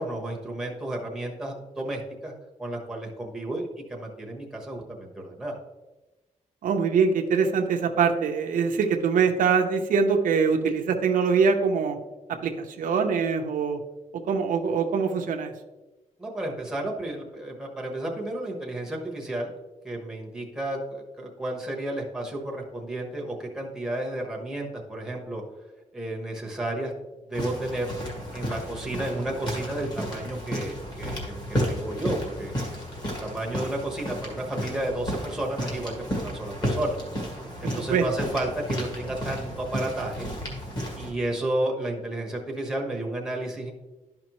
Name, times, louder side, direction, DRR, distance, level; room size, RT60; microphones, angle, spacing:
voice 1, 0.0-2.3 2.6-5.6 16.2-19.5 19.8-25.4 25.9-26.9 27.3-27.9 28.3-31.4 31.7-37.0 37.6-40.3 41.0-43.7, right 1 dB, 5° right, -1 dB, 1.2 m, -32 dB
voice 2, 6.6-12.0 12.4-13.8 14.1-15.5 37.6-38.1, right 5 dB, 80° right, 4 dB, 0.7 m, -23 dB
sound 1, 27.3-41.1, equal, 30° left, 1.9 m, -32 dB
11.5 x 5.2 x 3.0 m, 1.1 s
wide cardioid pair, 175°, 14 cm